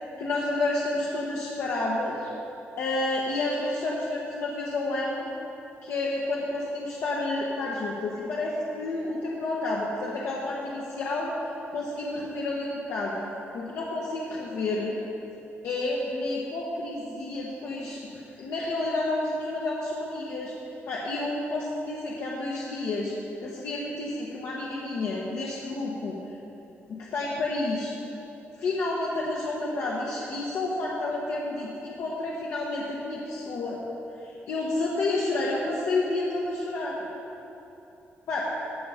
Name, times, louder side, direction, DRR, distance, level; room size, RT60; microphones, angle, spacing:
voice 1, 0.2-2.3 2.8-5.3 5.8-11.3 11.7-13.3 13.5-15.0 15.6-20.5 20.9-23.1 23.4-26.3 26.9-27.9 28.5-33.8 34.2-37.1 38.3-38.5, left 2 dB, 70° left, -4 dB, 1.1 m, -30 dB
14.5 x 5.6 x 5.0 m, 3.0 s
wide cardioid pair, 165°, 5 cm